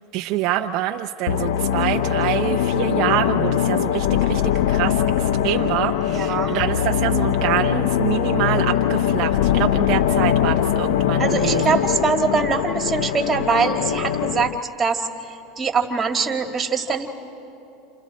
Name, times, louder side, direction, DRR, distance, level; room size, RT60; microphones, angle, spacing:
voice 1, 0.1-11.6, right 13 dB, 55° right, 5 dB, 0.6 m, -26 dB
sound 1, 1.3-14.6, left 10 dB, 75° left, 0.6 m, -21 dB
voice 2, 6.1-6.6 11.2-17.1, right 5 dB, 20° right, 4 dB, 2.0 m, -23 dB
29.0 x 28.5 x 4.2 m, 2.9 s
supercardioid pair, 120°, 0 cm